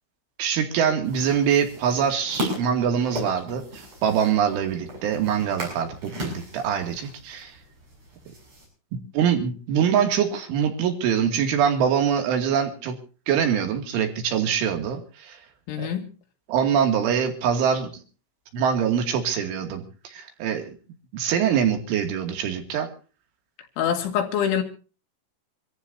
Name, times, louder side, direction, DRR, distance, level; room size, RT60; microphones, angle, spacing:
voice 1, 0.4-7.6 9.1-13.0 13.3-15.4 15.8-15.9 16.5-17.9 18.5-20.7 21.1-22.9, right 8 dB, 80° right, 4.9 m, -24 dB
sound 1, 1.0-8.7, equal, 30° right, 7.9 m, -37 dB
voice 2, 15.7-16.1 23.8-24.6, left 8 dB, 75° left, 4.6 m, -25 dB
27.0 x 14.5 x 2.7 m
omnidirectional pair, 5.5 m